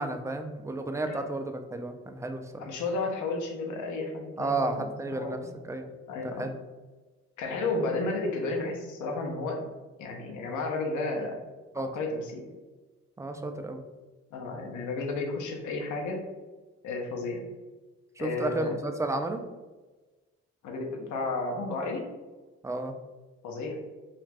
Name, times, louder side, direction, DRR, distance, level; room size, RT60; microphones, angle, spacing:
voice 1, 0.0-2.7 4.4-5.9 6.2-6.6 11.7-11.9 13.2-13.9 18.2-19.4 22.6-23.0, right 2 dB, 10° right, 6 dB, 0.3 m, -32 dB
voice 2, 2.6-4.8 5.1-5.5 6.1-6.5 7.4-9.6 10.0-11.4 11.9-12.4 14.3-16.2 16.8-17.4 18.2-18.8 20.6-22.1 23.4-23.8, left 3 dB, 65° left, 1 dB, 0.7 m, -32 dB
2.5 x 2.4 x 3.2 m, 1.2 s
hypercardioid pair, 50°, 32 cm